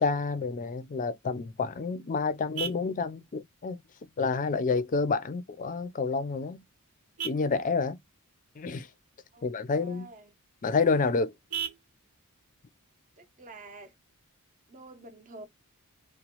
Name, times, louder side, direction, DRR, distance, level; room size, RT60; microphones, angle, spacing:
voice 1, 0.0-3.8 4.2-6.6 7.2-8.0 8.6-8.9 9.4-10.1 10.6-11.3, left 4 dB, 35° left, 0.4 m, -29 dB
Vehicle horn car horn honking, 1.3-14.3, right 8 dB, 80° right, 0.6 m, -45 dB
voice 2, 9.3-10.3 13.2-13.9 14.7-15.5, right 2 dB, 35° right, 0.6 m, -48 dB
3.0 x 2.0 x 2.8 m
head